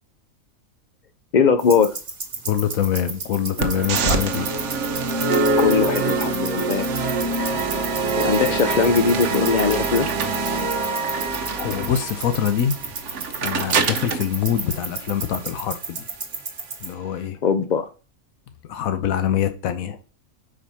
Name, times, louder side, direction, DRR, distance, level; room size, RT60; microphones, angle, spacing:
voice 1, 1.3-1.9 5.6-6.9 8.2-10.1 17.4-17.9, left 5 dB, 60° left, 0.4 m, -20 dB
sound 1, 1.6-16.9, right 4 dB, 40° right, 1.2 m, -34 dB
voice 2, 2.5-4.5 11.6-12.7 13.4-16.1 16.8-17.4 18.7-20.0, left 9 dB, 85° left, 1.2 m, -24 dB
sound 2, 3.6-15.6, right 3 dB, 60° right, 1.0 m, -25 dB
5.0 x 4.6 x 5.4 m
omnidirectional pair, 1.4 m